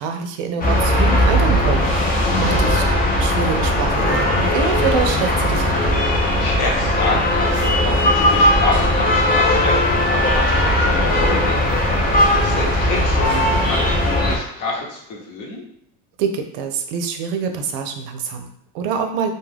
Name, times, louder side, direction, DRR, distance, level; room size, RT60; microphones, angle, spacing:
voice 1, 0.0-2.8 3.2-5.7 16.2-19.3, right 6 dB, 80° right, 6 dB, 0.6 m, -25 dB
sound 1, 0.6-14.4, left 1 dB, 20° left, 0.6 m, -18 dB
voice 2, 2.3-2.7 6.1-15.6, left 3 dB, 50° left, -1 dB, 0.9 m, -28 dB
2.3 x 2.2 x 3.3 m, 0.79 s
supercardioid pair, 125°, 40 cm